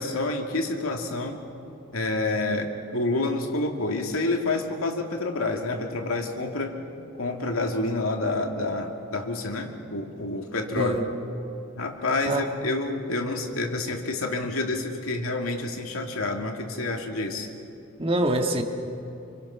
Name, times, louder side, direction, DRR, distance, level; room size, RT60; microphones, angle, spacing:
voice 1, 0.0-1.4 1.9-6.8 7.1-11.0 11.8-17.5, left 2 dB, 85° left, 3 dB, 2.4 m, -28 dB
voice 2, 18.0-18.6, right 1 dB, 25° right, 4 dB, 1.7 m, -24 dB
27.0 x 25.0 x 5.8 m, 2.8 s
head